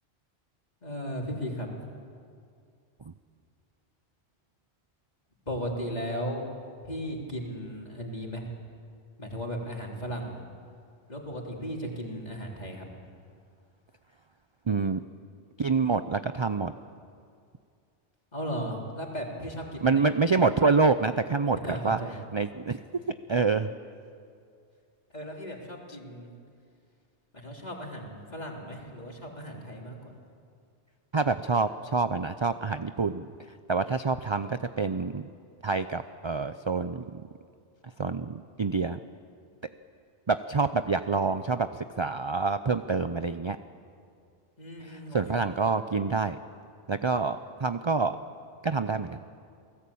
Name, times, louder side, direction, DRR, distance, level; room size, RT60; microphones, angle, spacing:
voice 1, 0.8-1.7 5.5-6.4 6.8-8.4 9.2-10.4 11.1-12.9 18.3-20.0 21.6-22.2 25.1-26.3 27.4-30.1 44.6-45.4, equal, 35° left, -1 dB, 3.7 m, -36 dB
voice 2, 14.7-15.0 15.6-16.7 19.8-22.0 22.3-22.8 23.3-23.7 31.1-33.3 33.7-35.3 35.6-37.2 38.0-39.0 40.3-43.6 44.8-46.4 46.9-48.2 48.6-49.2, right 4 dB, 35° right, 10 dB, 0.5 m, -27 dB
28.5 x 19.0 x 8.6 m, 2.3 s
omnidirectional pair, 1.2 m